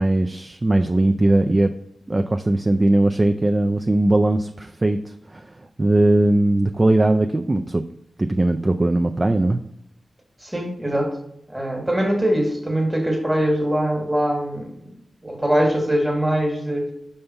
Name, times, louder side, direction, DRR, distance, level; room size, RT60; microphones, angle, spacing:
voice 1, 0.0-1.7 2.1-7.8 8.2-9.6, right 2 dB, 25° right, 6 dB, 0.3 m, -19 dB
voice 2, 10.4-11.2 11.5-14.7 15.2-16.9, equal, 10° right, 1 dB, 1.5 m, -22 dB
5.4 x 3.4 x 5.5 m, 0.78 s
wide cardioid pair, 85°, 0 cm